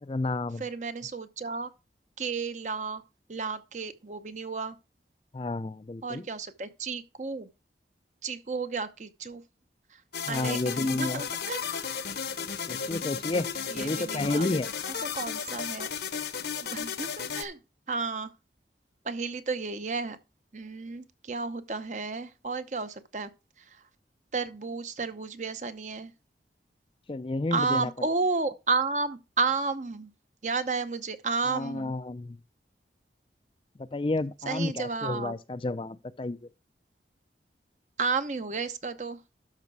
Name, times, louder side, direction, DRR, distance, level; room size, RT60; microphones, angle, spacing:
voice 1, 0.0-0.7 5.3-6.3 10.3-11.2 12.7-13.5 13.7-14.7 27.1-27.9 31.4-32.4 33.8-36.5, left 2 dB, 30° left, 0.4 m, -31 dB
voice 2, 0.6-1.7 2.2-3.0 3.3-4.8 6.0-7.5 8.2-9.4 10.3-11.6 13.7-14.5 14.9-15.9 16.7-17.6 17.9-18.3 19.0-20.2 20.5-23.3 24.3-26.1 27.5-30.1 30.4-32.0 34.5-35.3 38.0-39.2, right 4 dB, 40° right, 0.7 m, -32 dB
sound 1, 10.1-17.4, left 7 dB, 70° left, 0.9 m, -34 dB
12.5 x 5.0 x 4.6 m
head